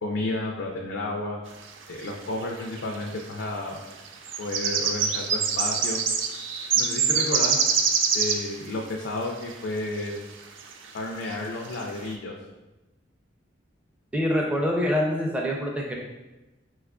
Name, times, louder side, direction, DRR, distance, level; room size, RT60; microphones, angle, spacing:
voice 1, 0.0-1.4 1.9-3.8 4.4-6.0 6.7-7.6 8.1-10.2 10.9-12.3, left 2 dB, 80° left, -1 dB, 0.4 m, -31 dB
sound 1, 2.1-2.2 2.4-3.0 3.9-8.5 9.4-9.5 10.1-10.2 10.6-10.9 11.3-11.4 11.6-11.9, right 6 dB, 80° right, 0.3 m, -24 dB
voice 2, 14.1-15.9, equal, 5° right, -2 dB, 0.4 m, -25 dB
4.1 x 2.3 x 2.3 m, 1.0 s
head